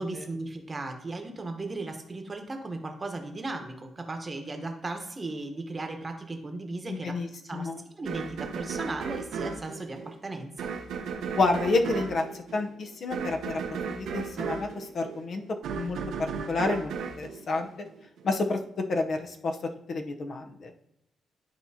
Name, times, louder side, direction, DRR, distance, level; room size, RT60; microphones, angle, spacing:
voice 1, 0.0-7.2 7.4-7.7 8.0-10.5, right 2 dB, 25° right, 4 dB, 1.0 m, -36 dB
voice 2, 6.9-7.8 11.3-13.6 13.9-15.4 15.7-16.0 16.5-17.7 18.2-18.6 18.9-19.6 19.9-20.7, left 3 dB, 50° left, 4 dB, 0.7 m, -29 dB
sound 1, 8.1-18.3, right 5 dB, 85° right, 0.8 m, -35 dB
11.5 x 4.4 x 2.8 m, 0.81 s
cardioid pair, 110°, 0 cm